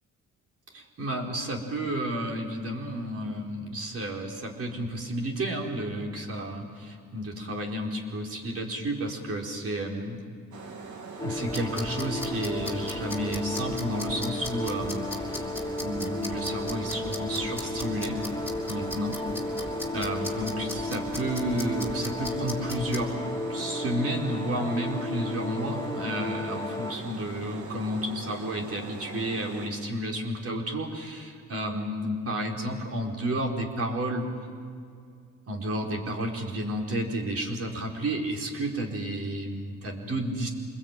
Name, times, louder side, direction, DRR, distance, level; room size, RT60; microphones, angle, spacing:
voice 1, 0.7-10.2 11.2-15.5 15.8-18.2 18.7-19.1 19.9-23.2 23.5-34.3 35.5-40.5, right 1 dB, 50° right, 0 dB, 4.5 m, -31 dB
sound 1, 10.5-29.7, right 4 dB, 75° right, 3.0 m, -42 dB
sound 2, 11.2-26.9, left 2 dB, 10° left, 1.2 m, -34 dB
sound 3, 11.3-23.1, left 1 dB, 10° right, 5.0 m, -40 dB
26.5 x 21.0 x 9.2 m, 2.3 s
cardioid pair, 90°, 30 cm